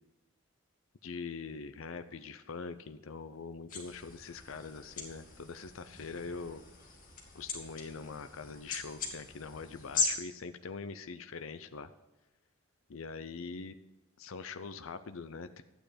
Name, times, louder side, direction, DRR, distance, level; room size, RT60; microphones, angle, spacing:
voice 1, 1.0-6.6 7.3-11.9 12.9-13.8 14.2-15.6, left 4 dB, 80° left, 10 dB, 0.6 m, -43 dB
sound 1, 3.7-10.1, left 5 dB, 40° left, 2.3 m, -39 dB
12.5 x 9.2 x 5.1 m, 1.1 s
head